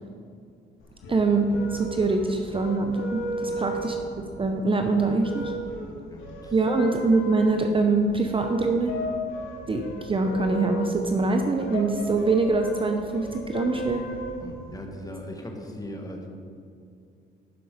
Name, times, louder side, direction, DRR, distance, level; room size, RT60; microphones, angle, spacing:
sound 1, 0.8-14.8, left 1 dB, 80° left, 1.5 m, -35 dB
voice 1, 1.1-4.0 4.4-5.5 6.5-9.0 9.7-14.1, right 3 dB, 25° right, 4 dB, 0.7 m, -24 dB
voice 2, 3.4-3.8 5.9-6.5 14.4-16.3, left 1 dB, 20° left, 2 dB, 1.4 m, -40 dB
12.0 x 5.3 x 5.0 m, 2.4 s
cardioid pair, 90°, 20 cm